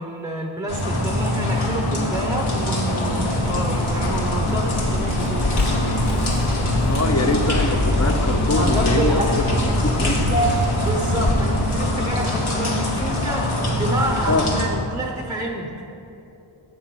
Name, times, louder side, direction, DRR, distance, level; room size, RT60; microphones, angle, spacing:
voice 1, 0.0-5.5 8.5-9.5 10.0-15.8, right 1 dB, 10° right, 1 dB, 0.6 m, -28 dB
sound 1, 0.7-14.7, left 1 dB, 85° left, 1.4 m, -23 dB
Vehicle, 3.0-13.3, left 1 dB, 55° left, 1.0 m, -26 dB
voice 2, 6.9-10.2 14.3-14.5, left 2 dB, 35° left, 6 dB, 0.6 m, -23 dB
7.2 x 4.3 x 6.9 m, 2.8 s
wide cardioid pair, 75°, 47 cm